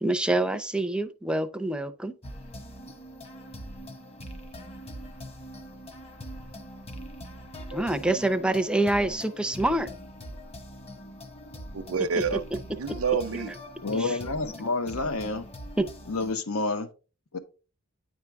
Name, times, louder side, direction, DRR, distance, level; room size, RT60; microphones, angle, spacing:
voice 1, 0.0-2.1 7.7-9.9 14.0-14.1 15.8-15.9, right 1 dB, 5° right, 0.5 m, -26 dB
sound 1, 2.2-16.3, equal, 30° left, 1.2 m, -42 dB
voice 2, 11.7-13.5, right 6 dB, 80° right, 0.6 m, -28 dB
voice 3, 13.8-15.5 16.1-16.9 17.3-17.4, left 3 dB, 85° left, 0.9 m, -29 dB
9.5 x 4.7 x 3.4 m
head